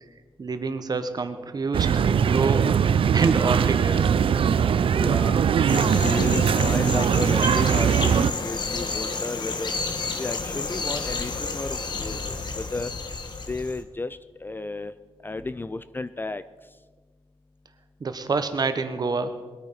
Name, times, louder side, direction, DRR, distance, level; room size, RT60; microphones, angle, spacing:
voice 1, 0.4-2.8 3.1-4.2 18.0-19.3, right 4 dB, 40° right, 9 dB, 1.2 m, -27 dB
sound 1, 1.7-8.3, right 7 dB, 60° right, 0.5 m, -21 dB
voice 2, 5.0-5.4 5.8-9.8 10.2-12.9 13.5-14.9 15.2-16.4, left 3 dB, 20° left, 13 dB, 0.4 m, -33 dB
sound 2, 5.7-13.8, left 4 dB, 45° left, 1.4 m, -31 dB
21.0 x 8.9 x 5.8 m, 1.4 s
wide cardioid pair, 120°, 10 cm